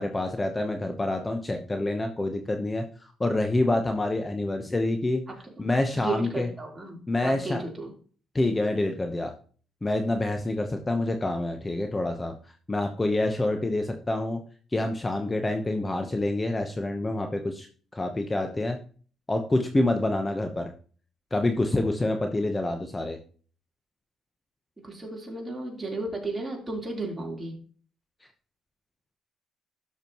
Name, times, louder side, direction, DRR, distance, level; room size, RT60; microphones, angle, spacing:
voice 1, 0.0-5.2 5.6-6.5 7.1-7.6 8.3-9.3 9.8-12.3 12.7-14.4 14.7-17.7 17.9-18.8 19.3-20.7 21.3-23.2, left 2 dB, 20° left, 5 dB, 1.0 m, -27 dB
voice 2, 5.9-7.9 24.8-27.5, right 2 dB, 20° right, -1 dB, 3.7 m, -34 dB
12.5 x 6.6 x 3.1 m, 0.42 s
cardioid pair, 90°, 0 cm